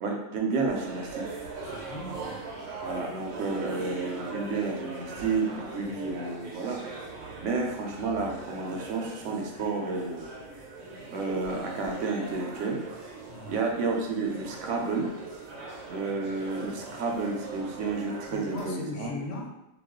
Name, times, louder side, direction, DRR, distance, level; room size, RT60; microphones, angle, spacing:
voice 1, 0.0-1.2 2.8-6.8 7.4-10.2 11.1-12.8 13.5-15.1 15.9-19.1, right 4 dB, 70° right, 1 dB, 0.9 m, -31 dB
sound 1, 0.6-18.7, right 3 dB, 85° right, 1.1 m, -41 dB
voice 2, 1.7-2.4 13.3-13.7 16.1-16.2 18.3-19.5, left 2 dB, 65° left, 1 dB, 0.7 m, -38 dB
2.3 x 2.3 x 3.5 m, 0.92 s
omnidirectional pair, 1.4 m